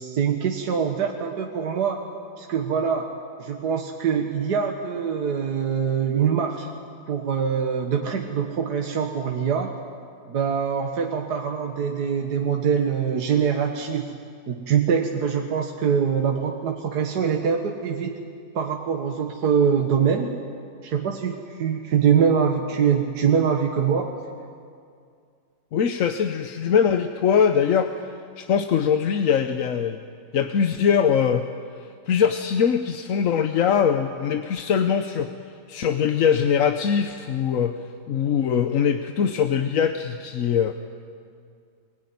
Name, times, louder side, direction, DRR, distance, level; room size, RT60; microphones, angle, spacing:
voice 1, 0.0-2.0 2.4-3.1 3.4-6.7 7.1-9.7 10.3-14.1 14.5-18.2 18.6-20.4 20.8-24.1, right 7 dB, 75° right, 2 dB, 1.9 m, -24 dB
voice 2, 25.7-30.0 30.3-31.5 31.7-35.3 35.7-37.8 38.1-40.7, left 7 dB, 60° left, 7 dB, 1.1 m, -22 dB
22.0 x 20.0 x 9.6 m, 2.3 s
omnidirectional pair, 1.8 m